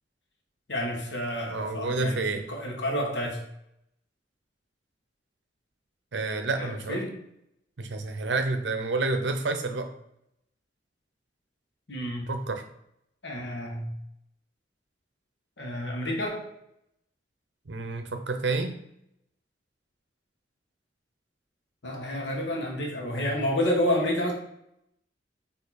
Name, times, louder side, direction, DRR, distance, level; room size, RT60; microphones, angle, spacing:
voice 1, 0.7-2.2 2.5-3.4 6.6-7.2 11.9-12.3 13.2-13.9 15.6-16.5 21.8-24.3, left 1 dB, 75° left, 0 dB, 1.1 m, -29 dB
voice 2, 1.5-2.5 6.1-7.0 7.8-9.9 12.3-12.6 17.7-18.8, right 3 dB, 75° right, 7 dB, 0.6 m, -29 dB
4.5 x 2.8 x 4.0 m, 0.78 s
head